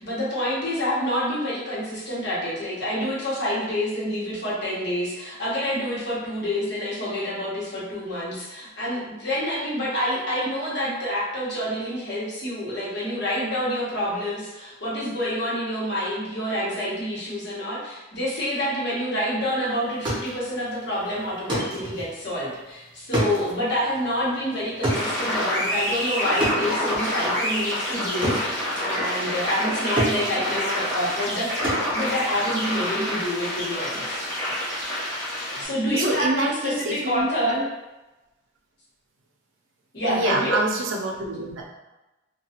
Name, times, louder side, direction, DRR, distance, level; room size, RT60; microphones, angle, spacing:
voice 1, 0.0-34.2 35.6-37.6 39.9-40.6, equal, 55° left, -7 dB, 1.0 m, -27 dB
sound 1, 19.8-29.7 30.0-32.9, right 1 dB, 25° right, 0.7 m, -31 dB
sound 2, 24.9-35.6, equal, 10° left, 0.8 m, -27 dB
voice 2, 35.6-37.6 40.1-41.7, right 2 dB, 75° right, 0 dB, 0.5 m, -27 dB
3.0 x 2.2 x 2.8 m, 1.1 s
head